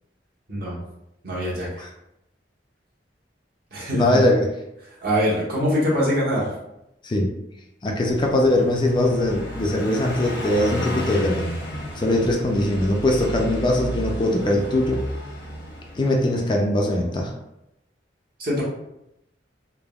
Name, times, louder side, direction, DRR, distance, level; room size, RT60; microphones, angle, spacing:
voice 1, 0.5-0.8 1.2-1.8 3.7-4.2 4.8-6.5 18.4-18.6, equal, 55° right, -6 dB, 1.0 m, -24 dB
voice 2, 3.9-4.4 7.0-7.3 7.8-11.5 12.0-15.0 16.0-17.3, left 1 dB, 25° left, 1 dB, 0.3 m, -21 dB
Car passing by, 8.1-16.5, equal, 75° left, 0.9 m, -32 dB
3.3 x 2.0 x 2.3 m, 0.85 s
head